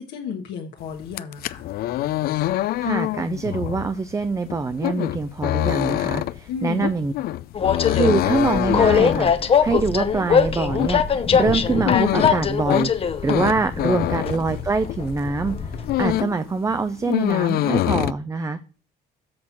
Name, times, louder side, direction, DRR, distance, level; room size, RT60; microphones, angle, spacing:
voice 1, 0.0-1.6 6.5-6.9, left 7 dB, 80° left, 1 dB, 1.3 m, -33 dB
sound 1, 1.0-15.1 15.5-16.4 16.7-18.1, left 15 dB, 65° left, 0.4 m, -25 dB
voice 2, 2.8-7.1 7.9-18.6, right 4 dB, 20° right, 11 dB, 0.5 m, -24 dB
Train, 7.5-16.2, left 7 dB, 35° left, 0.8 m, -22 dB
7.6 x 4.3 x 5.9 m, 0.38 s
cardioid pair, 110°, 17 cm